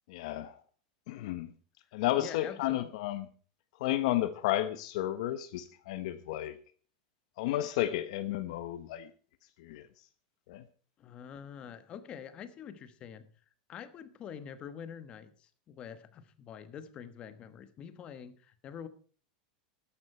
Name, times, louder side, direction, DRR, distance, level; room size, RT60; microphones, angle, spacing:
voice 1, 0.1-0.6 1.1-1.5 1.9-3.3 3.8-6.6 7.4-9.1 9.6-9.9 10.5-10.6, left 14 dB, 55° left, 11 dB, 0.9 m, -32 dB
voice 2, 2.1-2.9 11.0-13.2 13.7-18.9, left 8 dB, 25° left, 12 dB, 1.1 m, -46 dB
13.5 x 11.5 x 4.3 m, 0.41 s
supercardioid pair, 170°, 4 cm